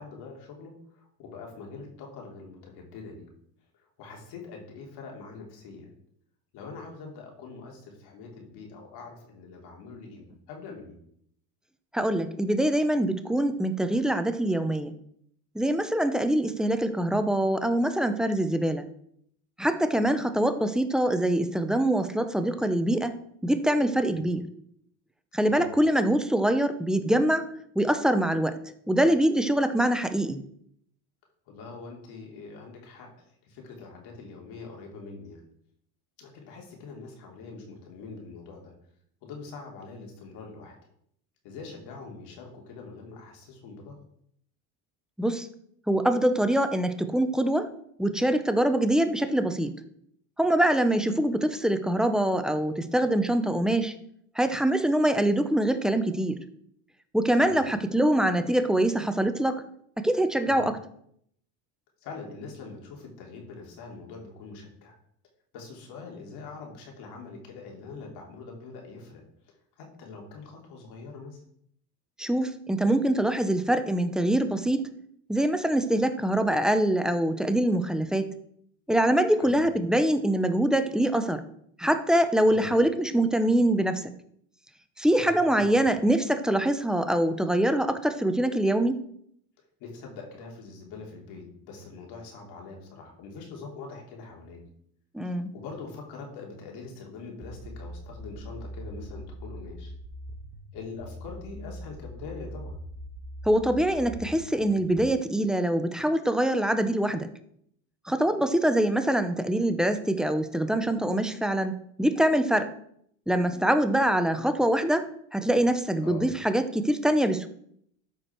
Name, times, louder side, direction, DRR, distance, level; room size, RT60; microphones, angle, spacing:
voice 1, 0.0-3.3 4.0-5.9 6.5-11.0 24.1-24.3 25.5-25.7 31.5-33.1 33.5-35.4 36.2-38.7 39.2-40.7 41.4-44.0 57.4-57.6 60.4-60.7 62.0-64.9 65.5-69.2 69.8-71.4 79.4-79.5 82.5-82.7 85.0-85.9 89.8-94.6 95.2-99.9 100.7-102.8 116.0-116.3, left 4 dB, 65° left, 0 dB, 3.1 m, -43 dB
voice 2, 11.9-14.9 15.5-18.9 19.6-23.2 23.4-24.4 25.3-27.5 27.8-28.6 28.9-30.4 45.2-45.5 45.9-47.7 48.0-49.8 50.4-53.9 54.4-56.4 57.1-59.6 60.0-60.8 72.2-74.9 75.3-78.3 78.9-81.4 81.8-84.0 85.0-89.0 95.1-95.5 103.4-107.3 108.1-111.7 112.0-112.7 113.3-117.5, right 1 dB, ahead, 9 dB, 0.6 m, -24 dB
sound 1, 97.4-105.1, equal, 35° right, 1.3 m, -41 dB
13.0 x 4.9 x 4.5 m, 0.69 s
cardioid pair, 120°, 42 cm